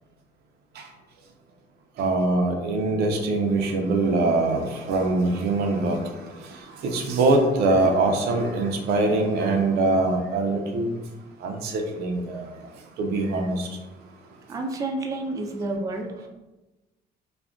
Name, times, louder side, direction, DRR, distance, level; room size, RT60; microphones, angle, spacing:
voice 1, 2.0-6.0 6.8-10.9 11.4-12.4 13.0-13.7, right 2 dB, 75° right, 3 dB, 0.5 m, -23 dB
voice 2, 14.5-16.3, right 2 dB, 20° right, 2 dB, 0.3 m, -30 dB
2.4 x 2.1 x 3.5 m, 1.1 s
cardioid pair, 110°, 17 cm